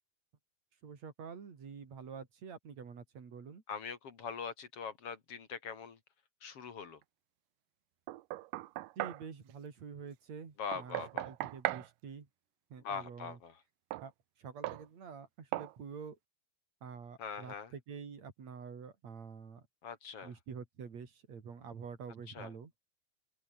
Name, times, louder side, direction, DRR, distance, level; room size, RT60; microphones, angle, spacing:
voice 1, 0.8-3.6 9.0-11.0 11.2-12.3 12.7-13.4 14.0-14.1 14.4-16.2 16.8-19.6 20.2-22.7, right 6 dB, 55° right, 4.5 m, -47 dB
voice 2, 3.7-6.0 6.4-7.0 10.6-11.3 12.8-13.6 17.2-17.7 19.8-20.3 22.3-22.5, left 6 dB, 50° left, 2.8 m, -42 dB
Knock, 8.1-9.2 10.7-11.9 13.9-14.1 14.6-14.9 15.5-15.7, right 17 dB, 85° right, 2.4 m, -38 dB
open air
omnidirectional pair, 3.8 m